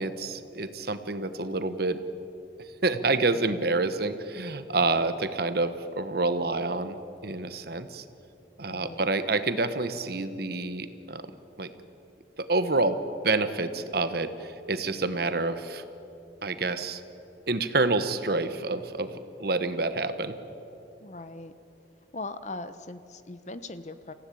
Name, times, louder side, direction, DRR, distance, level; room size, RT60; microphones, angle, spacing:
voice 1, 0.0-2.0 2.8-8.0 8.6-11.2 11.6-11.7 12.4-13.0 13.2-15.8 16.4-17.0 17.5-20.3, right 3 dB, 55° right, 11 dB, 1.2 m, -28 dB
voice 2, 8.7-9.0 21.0-21.5 22.1-24.1, left 2 dB, 40° left, 12 dB, 0.9 m, -40 dB
28.0 x 16.5 x 8.6 m, 2.9 s
head